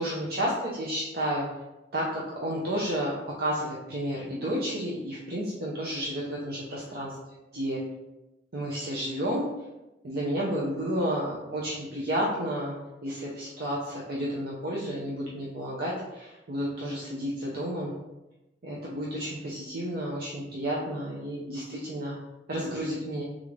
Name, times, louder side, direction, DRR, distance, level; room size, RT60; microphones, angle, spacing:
voice 1, 0.0-1.5 1.9-7.2 7.5-7.8 8.5-9.5 10.0-12.7 13.0-17.9 18.6-22.2 22.5-23.2, equal, 60° right, -5 dB, 0.7 m, -31 dB
3.7 x 3.7 x 3.1 m, 0.99 s
head